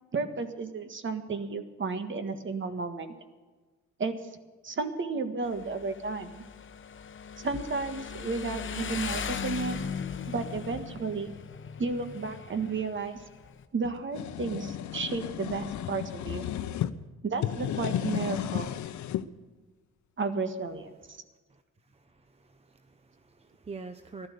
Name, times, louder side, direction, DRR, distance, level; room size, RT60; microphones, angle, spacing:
voice 1, 0.1-3.1 4.0-4.1 4.6-6.4 7.4-9.8 10.3-11.3 11.8-13.2 13.7-16.5 17.2-18.7 20.2-21.2, right 4 dB, 40° right, 9 dB, 1.6 m, -33 dB
Motorcycle, 5.4-13.7, left 6 dB, 40° left, 1.0 m, -38 dB
sound 1, 13.8-16.9 17.3-19.2, left 11 dB, 70° left, 0.8 m, -33 dB
voice 2, 21.9-24.3, right 4 dB, 20° right, 9 dB, 0.8 m, -46 dB
15.0 x 12.0 x 6.8 m, 1.4 s
cardioid pair, 90°, 30 cm